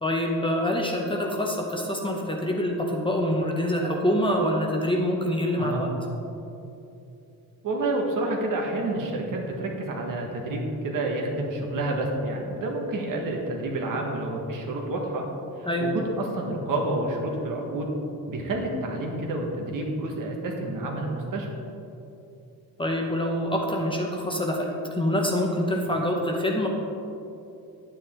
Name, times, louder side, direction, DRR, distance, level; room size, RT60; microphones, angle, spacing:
voice 1, 0.0-5.9 15.7-15.9 22.8-26.7, left 1 dB, 15° left, 0 dB, 0.7 m, -25 dB
voice 2, 7.6-15.2 15.6-17.9 18.3-21.5, right 2 dB, 60° right, 0 dB, 1.6 m, -29 dB
10.5 x 9.3 x 3.7 m, 2.8 s
cardioid pair, 170°, 37 cm